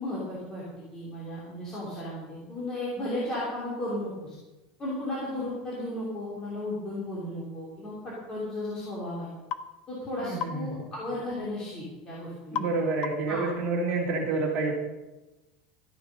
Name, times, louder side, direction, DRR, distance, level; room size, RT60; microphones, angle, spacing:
voice 1, 0.0-4.4 4.8-9.3 9.9-12.8 13.3-13.5, left 1 dB, 20° left, -7 dB, 3.1 m, -34 dB
sound 1, 9.5-9.7 10.4-10.6 12.5-12.8 13.0-13.4, left 8 dB, 35° left, 0.7 m, -33 dB
voice 2, 10.2-10.7 12.5-14.7, right 3 dB, 35° right, -1 dB, 2.9 m, -28 dB
13.5 x 10.0 x 5.4 m, 1.1 s
supercardioid pair, 175°, 3 cm